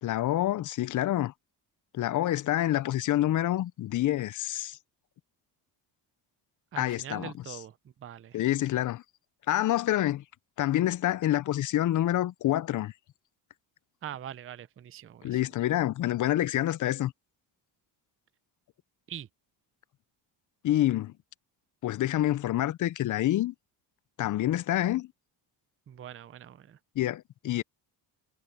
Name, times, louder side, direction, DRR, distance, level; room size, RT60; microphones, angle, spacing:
voice 1, 0.0-1.3 1.9-4.8 6.8-7.3 8.3-9.0 9.5-10.2 10.6-12.9 15.2-17.1 20.6-21.1 21.8-23.5 24.2-25.1 27.0-27.6, left 13 dB, 45° left, 0.4 m, -27 dB
voice 2, 6.7-8.4 14.0-15.4 19.1-19.3 25.9-26.8, right 10 dB, 30° right, 0.6 m, -43 dB
cardioid pair, 120°, 45 cm